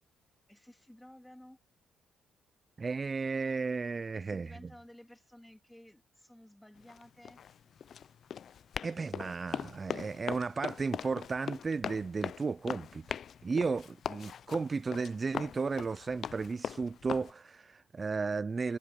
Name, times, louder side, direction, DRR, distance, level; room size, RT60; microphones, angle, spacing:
voice 1, 0.5-1.6 4.1-7.4, left 1 dB, 5° left, 2.3 m, -54 dB
voice 2, 2.8-4.5 8.8-18.8, right 4 dB, 30° right, 0.3 m, -34 dB
Run, 6.8-17.3, left 8 dB, 60° left, 0.4 m, -41 dB
cardioid pair, 90°, 0 cm